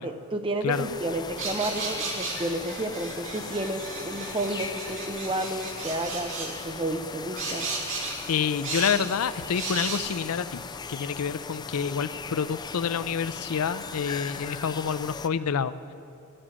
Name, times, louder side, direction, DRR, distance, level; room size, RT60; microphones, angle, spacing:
voice 1, 0.0-7.7, right 1 dB, 25° right, 6 dB, 0.8 m, -31 dB
sound 1, 0.7-15.3, left 5 dB, 20° left, 0.3 m, -39 dB
sound 2, 1.4-6.5 7.4-8.2 8.6-9.0 9.5-10.0, right 3 dB, 60° right, 2.8 m, -34 dB
voice 2, 8.3-10.6 10.9-15.7, left 7 dB, 90° left, 15 dB, 0.4 m, -28 dB
14.0 x 7.7 x 9.8 m, 2.8 s
head